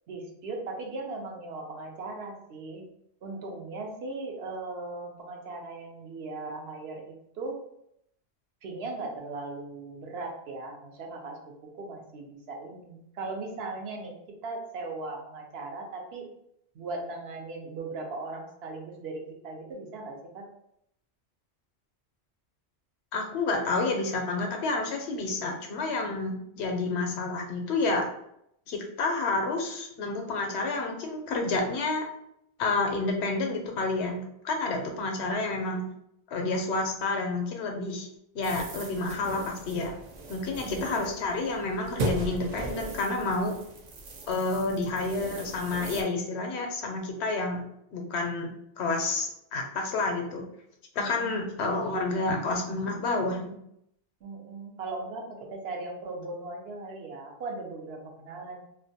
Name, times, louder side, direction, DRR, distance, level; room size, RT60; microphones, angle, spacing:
voice 1, 0.1-2.9 3.2-7.6 8.6-14.2 14.4-16.3 16.7-20.5 40.5-41.0 51.0-51.4 54.2-58.6, right 3 dB, 75° right, 1 dB, 0.8 m, -38 dB
voice 2, 23.1-28.1 28.7-32.0 32.6-35.8 36.3-38.1 38.3-39.9 40.3-43.6 44.3-47.6 47.9-48.5 48.8-50.4 51.0-53.6, left 3 dB, 85° left, 2 dB, 0.9 m, -29 dB
sound 1, 38.4-46.0, right 2 dB, 55° right, 0.5 m, -38 dB
2.4 x 2.1 x 2.7 m, 0.75 s
omnidirectional pair, 1.1 m